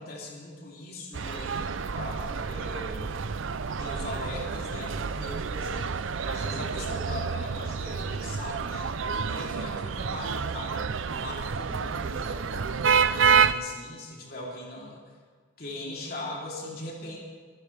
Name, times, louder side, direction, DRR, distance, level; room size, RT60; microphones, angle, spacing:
voice 1, 0.0-3.2 3.8-15.1 15.6-17.2, left 1 dB, 50° left, -3 dB, 3.4 m, -40 dB
sound 1, 1.1-13.5, right 6 dB, 90° right, 0.6 m, -28 dB
23.0 x 15.0 x 3.5 m, 1.5 s
head